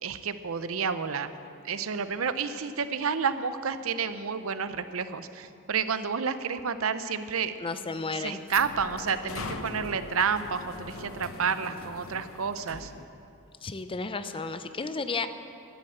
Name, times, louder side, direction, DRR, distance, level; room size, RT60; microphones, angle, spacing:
voice 1, 0.0-1.3 1.6-7.5 8.1-12.9, right 6 dB, 75° right, 12 dB, 0.7 m, -30 dB
voice 2, 7.6-8.4 13.6-15.3, left 4 dB, 25° left, 11 dB, 0.6 m, -33 dB
sound 1, 7.8-13.0, left 3 dB, 70° left, 0.9 m, -42 dB
12.0 x 11.0 x 7.8 m, 2.6 s
head